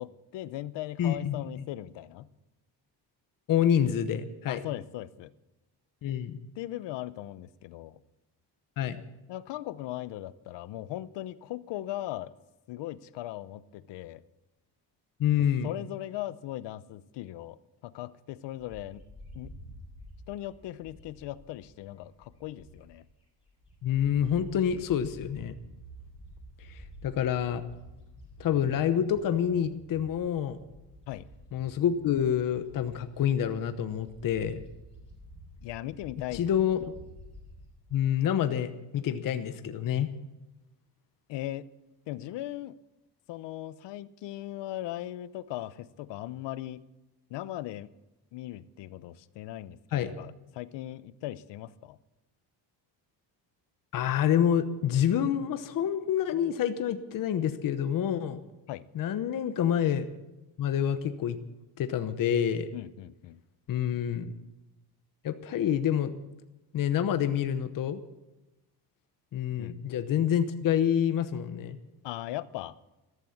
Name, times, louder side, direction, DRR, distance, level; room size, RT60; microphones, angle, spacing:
voice 1, 0.0-2.3 4.5-5.3 6.6-8.0 9.3-12.3 12.7-14.2 15.6-17.6 17.8-19.0 19.3-19.5 20.3-23.0 31.1-31.2 35.6-36.5 41.3-41.6 42.1-42.8 43.3-46.8 47.3-47.9 48.3-52.0 58.7-58.8 62.7-63.4 69.6-69.7 72.0-72.8, left 14 dB, 75° left, 17 dB, 0.8 m, -38 dB
voice 2, 1.0-1.6 3.5-4.6 6.0-6.4 8.8-9.0 15.2-15.7 23.8-25.5 26.7-27.6 28.4-30.6 31.5-34.6 36.3-36.9 37.9-40.1 49.9-50.2 53.9-58.4 58.9-60.1 60.6-61.4 61.8-62.7 63.7-64.3 65.2-66.1 66.7-68.0 69.3-71.8, left 9 dB, 50° left, 10 dB, 1.0 m, -27 dB
Bird, 18.6-23.1 23.5-37.7, equal, 15° left, 7.3 m, -50 dB
14.0 x 13.0 x 7.2 m, 1.0 s
cardioid pair, 150°, 43 cm